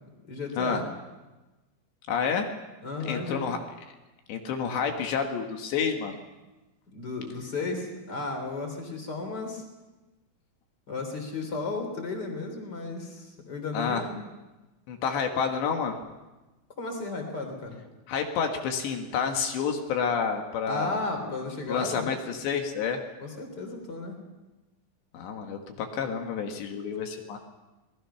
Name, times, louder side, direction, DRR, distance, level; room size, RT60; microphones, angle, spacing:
voice 1, 0.3-0.9 2.8-3.4 6.9-9.6 10.9-14.2 16.8-17.8 20.7-22.1 23.2-24.2, left 3 dB, 25° left, 3 dB, 3.2 m, -34 dB
voice 2, 2.1-2.5 3.0-3.6 4.3-6.2 13.7-14.0 14.9-16.0 18.1-21.3 21.7-23.0 25.1-27.4, left 6 dB, 65° left, 4 dB, 3.5 m, -29 dB
27.0 x 20.0 x 5.8 m, 1.1 s
omnidirectional pair, 5.8 m